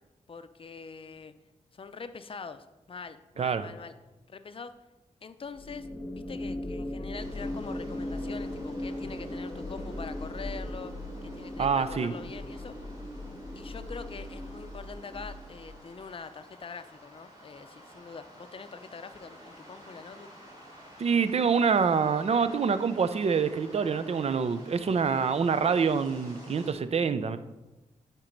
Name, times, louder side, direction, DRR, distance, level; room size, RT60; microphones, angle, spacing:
voice 1, 0.3-1.3 1.7-3.9 4.3-4.7 5.2-5.9 6.1-10.9 11.2-12.9 13.5-20.3, left 5 dB, 45° left, 11 dB, 0.5 m, -44 dB
sound 1, 5.5-16.0, left 1 dB, 20° left, 1.4 m, -38 dB
sound 2, 7.2-26.7, equal, 35° right, 2.7 m, -52 dB
voice 2, 11.6-12.1 21.0-27.4, right 6 dB, 55° right, 12 dB, 0.5 m, -26 dB
8.9 x 4.4 x 5.2 m, 1.1 s
wide cardioid pair, 100°, 13 cm